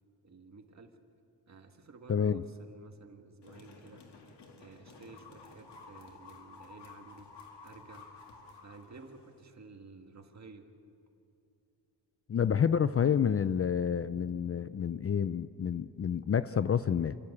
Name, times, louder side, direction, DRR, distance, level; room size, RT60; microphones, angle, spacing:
voice 1, 0.2-1.0 1.5-4.0 4.6-7.3 7.6-8.1 8.6-10.7, right 4 dB, 40° right, 4 dB, 1.8 m, -53 dB
voice 2, 2.1-2.4 12.3-17.2, left 7 dB, 35° left, 14 dB, 0.4 m, -29 dB
sound 1, 3.4-9.4, left 4 dB, 85° left, 2.5 m, -53 dB
28.5 x 12.0 x 8.5 m, 2.7 s
wide cardioid pair, 110°, 40 cm